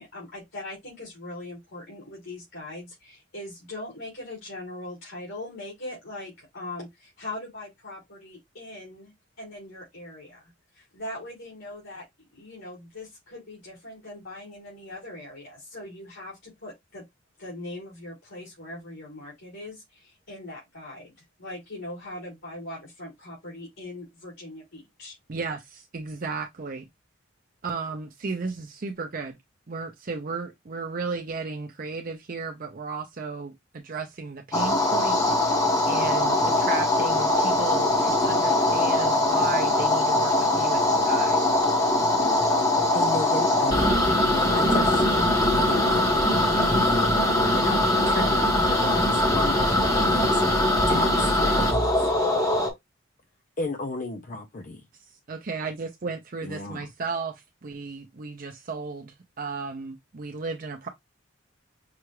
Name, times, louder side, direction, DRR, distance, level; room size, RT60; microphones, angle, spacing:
voice 1, 0.0-10.4 10.7-17.0 17.4-21.1 21.4-25.2, left 1 dB, 70° left, 3.1 m, -40 dB
voice 2, 25.3-26.9 27.6-29.4 29.7-35.2 35.5-41.4 55.1-60.9, right 4 dB, 45° right, 0.5 m, -34 dB
sound 1, 34.5-52.7, left 1 dB, 15° left, 1.0 m, -22 dB
voice 3, 42.9-47.2 47.5-52.1 53.6-54.8 56.4-56.9, left 2 dB, 40° left, 0.5 m, -34 dB
5.7 x 2.4 x 3.1 m
head